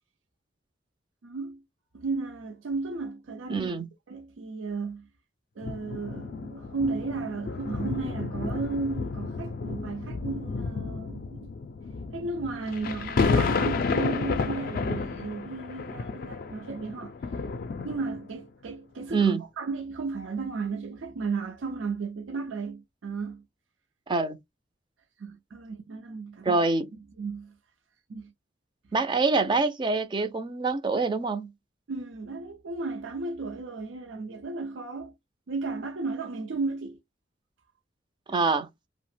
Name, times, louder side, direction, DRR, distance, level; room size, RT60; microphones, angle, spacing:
voice 1, 1.2-1.6 1.9-3.7 4.1-5.1 5.6-11.5 12.1-17.1 17.8-23.4 25.2-26.6 27.2-27.5 28.1-28.3 31.9-35.1 35.5-37.0, right 4 dB, 85° right, 0.5 m, -34 dB
voice 2, 3.5-3.9 19.1-19.4 24.1-24.4 26.4-26.9 28.9-31.5 38.3-38.7, right 4 dB, 25° right, 0.4 m, -25 dB
sound 1, 5.6-18.4 19.1-19.2, left 4 dB, 50° left, 0.4 m, -31 dB
2.8 x 2.0 x 3.1 m
head